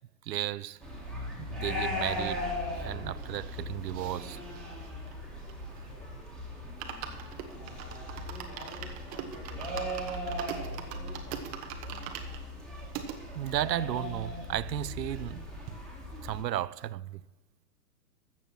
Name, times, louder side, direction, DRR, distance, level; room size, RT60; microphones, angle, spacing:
voice 1, 0.3-0.8 1.4-4.4 13.3-15.4 16.2-17.2, right 13 dB, 85° right, 0.6 m, -34 dB
sound 1, 0.8-16.4, left 1 dB, ahead, 1.9 m, -38 dB
sound 2, 3.2-6.0 6.3-6.4 6.6-13.2 13.7-13.8 14.0-14.1 14.4-15.4 15.7-15.8, right 8 dB, 20° right, 0.7 m, -43 dB
voice 2, 5.7-6.4 8.1-11.8, left 1 dB, 70° left, 3.7 m, -51 dB
13.5 x 7.1 x 6.0 m
hypercardioid pair, 130°, 49 cm